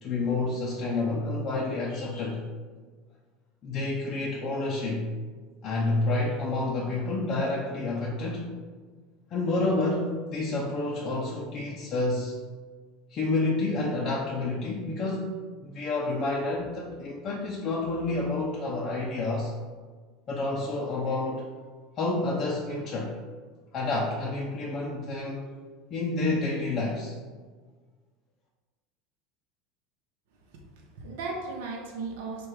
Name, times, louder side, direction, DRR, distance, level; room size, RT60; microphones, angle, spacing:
voice 1, 0.0-2.5 3.6-5.1 5.6-8.5 9.3-12.4 13.1-19.5 20.3-21.5 22.0-23.2 23.7-25.5 25.9-27.2, left 2 dB, 30° left, -3 dB, 0.5 m, -29 dB
voice 2, 30.5-32.5, right 3 dB, 75° right, 1 dB, 0.8 m, -37 dB
4.2 x 2.3 x 4.7 m, 1.5 s
supercardioid pair, 155°, 0 cm